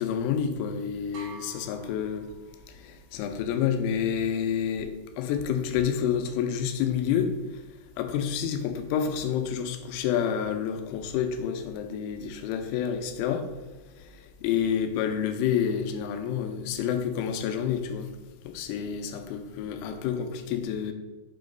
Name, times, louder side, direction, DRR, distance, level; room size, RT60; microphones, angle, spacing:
voice 1, 0.0-2.3 2.7-7.6 8.0-13.5 13.9-18.1 18.4-20.9, left 8 dB, 80° left, 6 dB, 3.0 m, -29 dB
sound 1, 1.1-2.9, right 4 dB, 65° right, 3.6 m, -47 dB
7.7 x 3.0 x 5.1 m, 1.1 s
omnidirectional pair, 5.7 m